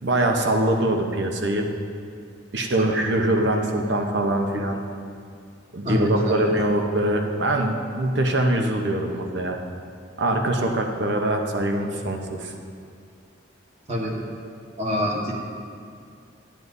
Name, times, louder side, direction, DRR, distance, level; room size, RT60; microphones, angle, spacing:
voice 1, 0.0-1.7 2.5-4.8 5.7-9.6 10.2-12.5, right 1 dB, 65° right, 3 dB, 0.8 m, -23 dB
voice 2, 5.8-6.5 13.9-14.1 14.8-15.3, equal, 35° right, -2 dB, 1.3 m, -25 dB
11.0 x 10.5 x 2.6 m, 2.3 s
head